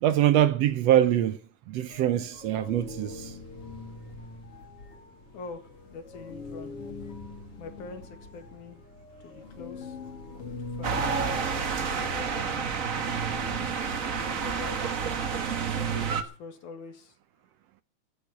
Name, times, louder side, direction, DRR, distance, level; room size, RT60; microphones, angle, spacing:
voice 1, 0.0-1.4 1.7-3.3, right 11 dB, 70° right, 1.7 m, -23 dB
sound 1, 1.9-14.7, left 2 dB, 50° left, 2.8 m, -43 dB
voice 2, 5.9-6.7 7.6-8.8 9.2-10.0 10.8-11.2 11.7-12.6 13.1-13.8 14.1-14.8 15.7-17.1, left 4 dB, 85° left, 3.4 m, -44 dB
sound 2, 10.8-16.2, right 6 dB, 45° right, 1.0 m, -29 dB
13.5 x 6.9 x 9.6 m
omnidirectional pair, 3.4 m